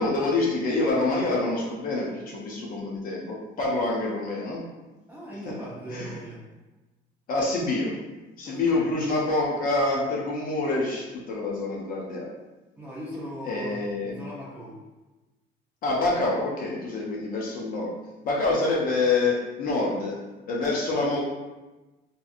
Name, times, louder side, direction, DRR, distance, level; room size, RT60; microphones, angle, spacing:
voice 1, 0.0-4.6 5.9-6.1 7.3-8.0 8.4-12.3 13.4-14.2 15.8-17.9 18.2-20.2 20.5-21.2, left 2 dB, 45° left, -3 dB, 0.5 m, -26 dB
voice 2, 5.1-6.4 8.4-8.9 12.7-14.8, equal, 10° right, -7 dB, 0.7 m, -39 dB
2.7 x 2.5 x 2.4 m, 1.1 s
cardioid pair, 165°, 20 cm